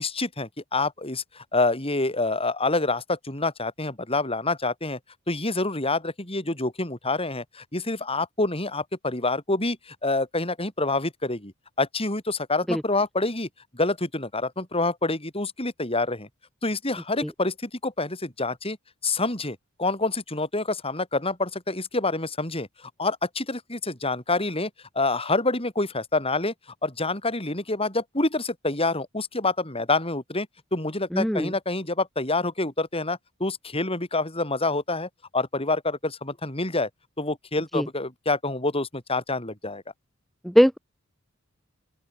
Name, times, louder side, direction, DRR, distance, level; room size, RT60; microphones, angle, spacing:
voice 1, 0.0-5.0 5.3-11.5 11.8-13.5 13.7-16.3 16.6-18.8 19.0-24.7 24.9-26.5 26.8-36.9 37.2-39.8, left 2 dB, 25° left, 7.6 m, -27 dB
voice 2, 31.1-31.5 37.7-37.9 40.4-40.8, equal, ahead, 1.4 m, -20 dB
open air
head